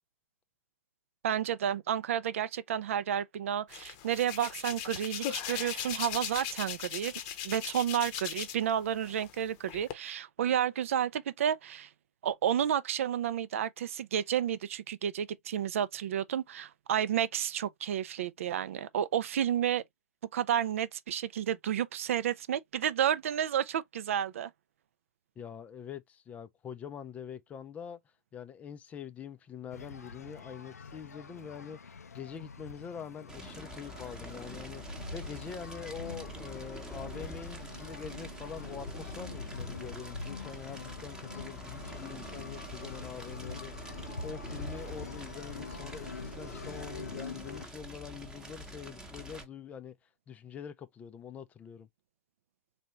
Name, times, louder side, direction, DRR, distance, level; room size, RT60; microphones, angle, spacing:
voice 1, 1.2-7.1 7.4-11.9 12.2-19.8 20.3-24.5, right 9 dB, 60° right, 0.4 m, -31 dB
Hands, 3.7-8.7 9.0-9.9, left 10 dB, 35° left, 0.8 m, -38 dB
voice 2, 25.4-28.0 28.3-50.0 50.3-51.9, left 7 dB, 15° left, 0.4 m, -45 dB
sound 1, 29.7-47.7, left 4 dB, 85° left, 0.5 m, -45 dB
Fire, 33.3-49.4, right 1 dB, 10° right, 0.9 m, -45 dB
4.1 x 2.7 x 2.9 m
hypercardioid pair, 120°, 8 cm